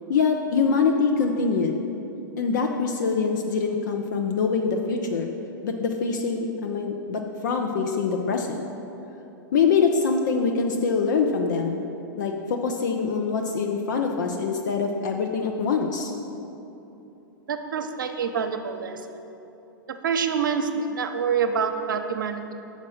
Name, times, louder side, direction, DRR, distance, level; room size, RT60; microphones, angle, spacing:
voice 1, 0.1-1.8 2.4-5.3 5.6-8.7 9.5-11.8 12.2-16.1, left 5 dB, 60° left, 3 dB, 0.6 m, -24 dB
voice 2, 17.5-19.0 20.0-22.5, right 6 dB, 70° right, 7 dB, 0.6 m, -26 dB
6.5 x 5.3 x 6.2 m, 3.0 s
figure-of-eight pair, 105°, 11 cm